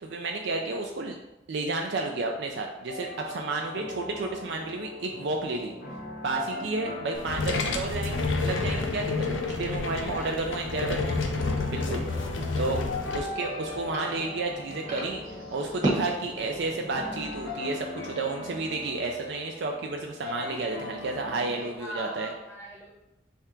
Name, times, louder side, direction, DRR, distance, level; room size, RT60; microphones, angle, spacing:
voice 1, 0.0-1.2 1.5-5.7 6.2-11.2 11.7-12.0 12.6-12.8 13.1-15.2 15.5-22.3, right 3 dB, 65° right, 2 dB, 0.4 m, -31 dB
sound 1, 2.9-21.8, left 2 dB, 60° left, 0.9 m, -40 dB
sound 2, 7.1-13.2, left 3 dB, 85° left, 0.6 m, -29 dB
voice 2, 9.3-10.4 11.8-12.2 21.5-22.9, right 1 dB, 15° left, -6 dB, 0.5 m, -43 dB
sound 3, 12.5-17.6, right 1 dB, 40° right, 1.3 m, -36 dB
3.6 x 3.4 x 4.4 m, 0.96 s
head